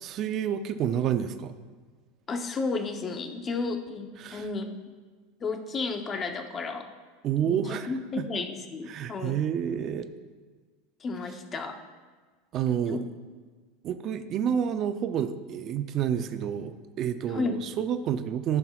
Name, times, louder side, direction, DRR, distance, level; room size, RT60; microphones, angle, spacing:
voice 1, 0.0-1.5 4.2-4.5 7.2-7.9 8.2-8.4 8.9-10.1 12.5-13.0 13.8-18.6, right 9 dB, 40° right, 9 dB, 0.4 m, -29 dB
voice 2, 2.3-4.7 5.4-6.9 7.4-9.4 11.0-11.8 12.8-13.0 17.3-17.6, left 4 dB, 25° left, 6 dB, 0.7 m, -32 dB
14.5 x 5.8 x 2.4 m, 1.5 s
supercardioid pair, 140°, 0 cm